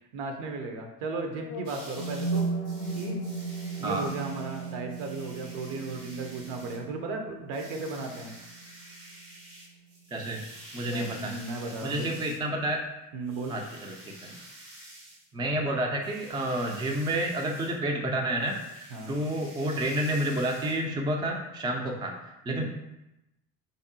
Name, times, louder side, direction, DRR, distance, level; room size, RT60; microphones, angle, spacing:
voice 1, 0.1-2.5 2.9-3.2 3.8-8.4 10.8-12.1 13.1-13.5 18.9-19.1 22.5-22.6, right 3 dB, 65° right, 3 dB, 0.7 m, -35 dB
sound 1, 1.4-9.4, right 3 dB, 40° left, 0.6 m, -36 dB
sound 2, 1.6-6.8 7.5-12.4 13.2-15.2 15.9-17.8 18.4-20.8, right 1 dB, 85° right, 1.0 m, -49 dB
voice 2, 10.1-10.4 10.7-11.4 11.8-12.8 13.5-14.4 15.3-22.6, right 1 dB, 10° right, 1 dB, 0.4 m, -30 dB
3.4 x 2.7 x 2.6 m, 0.94 s
hypercardioid pair, 55°, 46 cm